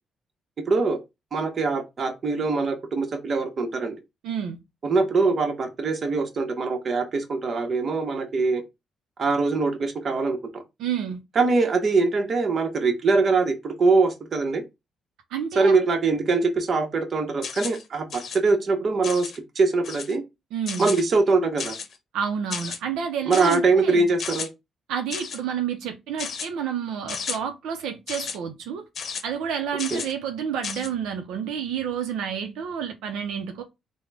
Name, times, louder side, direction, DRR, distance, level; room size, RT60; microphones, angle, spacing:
voice 1, 0.7-1.0 1.3-4.0 4.8-8.6 9.2-10.6 11.3-14.6 15.5-20.2 20.8-21.7 23.3-24.5 29.9-30.0, right 3 dB, 45° right, 0.9 m, -23 dB
voice 2, 4.2-4.6 10.8-11.2 15.3-15.8 20.5-20.9 22.1-24.1 24.9-28.8 29.2-33.6, right 8 dB, 90° right, 0.5 m, -30 dB
sound 1, 17.4-17.8 18.1-18.4 19.0-19.4 19.8-20.2 20.7-21.0 21.6-22.0 22.5-22.8 23.3-23.6 24.2-24.5 25.1-25.4 26.2-26.5 27.1-27.4 28.1-28.4 28.9-29.2 29.8-30.1 30.6-30.9, left 6 dB, 60° left, 0.7 m, -33 dB
3.7 x 2.1 x 3.3 m
cardioid pair, 90°, 0 cm